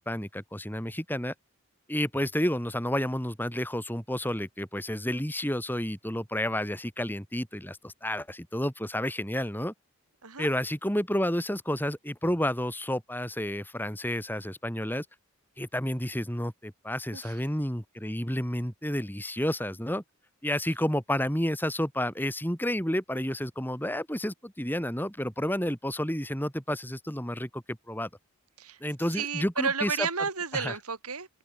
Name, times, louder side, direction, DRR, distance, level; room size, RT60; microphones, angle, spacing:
voice 1, 0.0-1.3 1.9-9.7 10.4-15.1 15.6-20.0 20.4-28.1 28.8-30.1 30.5-30.7, left 1 dB, 10° left, 5.5 m, -30 dB
voice 2, 29.1-31.3, right 5 dB, 90° right, 4.4 m, -32 dB
open air
head